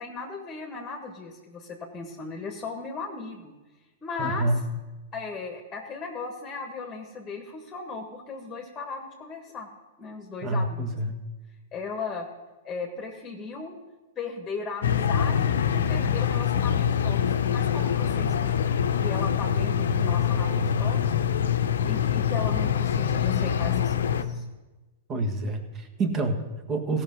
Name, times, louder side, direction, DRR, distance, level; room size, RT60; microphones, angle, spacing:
voice 1, 0.0-3.5 4.0-4.4 5.1-9.7 10.0-11.1 11.7-12.3 12.6-13.7 14.1-21.2 21.5-24.4, left 4 dB, 20° left, 2 dB, 1.5 m, -37 dB
voice 2, 4.2-4.6 10.4-11.1 25.1-27.0, right 2 dB, 30° right, 6 dB, 1.6 m, -27 dB
sound 1, 14.8-24.2, left 8 dB, 70° left, 0.7 m, -24 dB
17.0 x 5.9 x 5.4 m, 1.2 s
hypercardioid pair, 110°, 0 cm